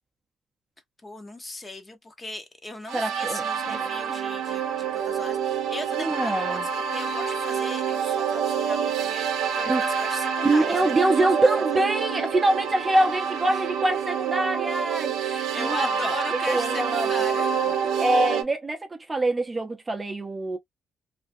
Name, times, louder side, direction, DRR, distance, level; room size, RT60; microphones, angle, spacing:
voice 1, 1.0-11.3 11.7-11.8 13.5-13.6 15.2-17.5, left 2 dB, 25° left, 0.8 m, -38 dB
voice 2, 2.9-3.8 6.0-6.7 9.7-9.8 10.4-16.2 16.5-17.1 17.6-17.7 18.0-20.6, right 2 dB, 20° right, 0.6 m, -25 dB
sound 1, 2.9-18.4, right 7 dB, 80° right, 0.6 m, -27 dB
2.5 x 2.3 x 2.5 m
cardioid pair, 90°, 0 cm